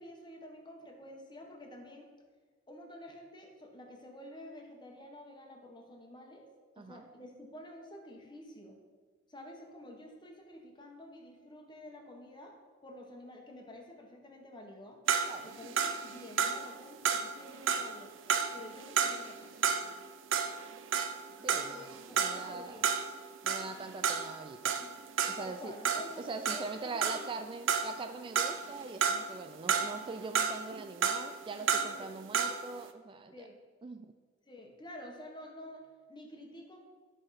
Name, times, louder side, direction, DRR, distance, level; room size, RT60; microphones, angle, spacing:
voice 1, 0.0-2.1 2.7-6.5 6.7-8.8 9.3-12.5 12.8-15.0 15.4-18.1 18.5-19.5 21.4-22.9 24.8-24.9 25.3-27.3 31.9-32.1 33.3-33.6 34.5-36.8, left 1 dB, 25° left, 2 dB, 1.3 m, -49 dB
sound 1, 15.1-20.0 20.3-27.4 27.7-29.4 29.7-32.7, right 6 dB, 80° right, 0.6 m, -32 dB
voice 2, 21.4-22.9 23.4-24.8 25.3-25.8 26.2-33.5 33.8-34.1, right 3 dB, 25° right, 8 dB, 0.3 m, -42 dB
11.0 x 4.9 x 5.8 m, 1.5 s
head